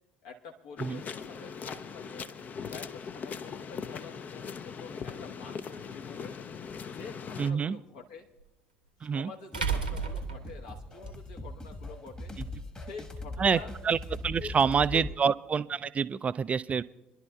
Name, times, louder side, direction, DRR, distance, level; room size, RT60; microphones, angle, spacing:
voice 1, 0.2-2.3 2.7-6.3 6.8-8.3 9.0-12.3 12.8-13.7 14.4-14.5 14.9-15.2, left 5 dB, 65° left, 1 dB, 1.4 m, -47 dB
sound 1, 0.8-7.5, left 6 dB, 35° left, 0.6 m, -40 dB
sound 2, 5.7-5.8 8.4-8.5 9.5-11.1, right 5 dB, 85° right, 1.0 m, -32 dB
voice 2, 7.4-7.8 9.0-9.3 13.4-13.6 13.8-14.0 14.2-16.8, right 6 dB, 30° right, 15 dB, 0.3 m, -27 dB
sound 3, 9.5-15.1, left 1 dB, 20° left, 1.5 m, -41 dB
27.0 x 11.5 x 2.3 m, 0.96 s
figure-of-eight pair, 60°, 5 cm